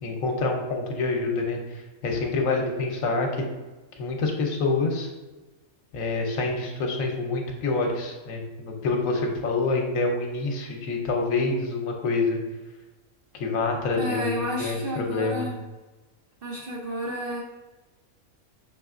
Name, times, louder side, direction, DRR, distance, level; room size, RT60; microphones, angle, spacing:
voice 1, 0.0-3.4 3.9-5.1 5.9-12.4 13.3-15.5, left 3 dB, 75° left, 2 dB, 1.1 m, -27 dB
voice 2, 14.0-15.6 16.4-17.4, equal, 55° right, -2 dB, 0.7 m, -31 dB
5.9 x 3.5 x 2.4 m, 1.2 s
omnidirectional pair, 1.5 m